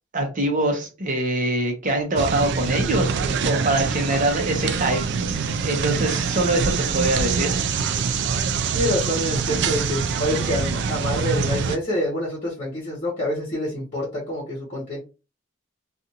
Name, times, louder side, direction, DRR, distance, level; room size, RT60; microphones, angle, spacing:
voice 1, 0.1-5.0 5.6-7.5, right 1 dB, 40° right, 0.8 m, -24 dB
sound 1, 2.2-11.8, right 5 dB, 55° right, 0.3 m, -24 dB
voice 2, 8.7-15.0, left 1 dB, 35° left, 1.1 m, -27 dB
2.5 x 2.5 x 2.8 m
head